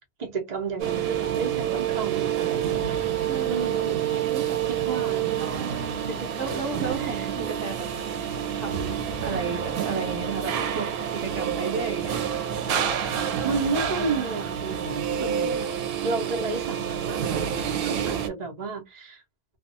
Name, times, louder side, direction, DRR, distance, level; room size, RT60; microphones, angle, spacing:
voice 1, 0.2-3.0 3.5-4.1 4.7-5.7 6.1-6.3 6.9-7.2 13.4-15.6 16.0-19.2, right 3 dB, 35° right, 1.0 m, -32 dB
sound 1, 0.8-18.3, right 9 dB, 90° right, 1.1 m, -28 dB
voice 2, 3.2-3.8 4.3-4.6 5.5-7.9 8.6-12.3 12.8-12.9 15.2-15.8 17.6-18.3, right 5 dB, 65° right, 0.9 m, -34 dB
2.6 x 2.3 x 2.6 m
omnidirectional pair, 1.5 m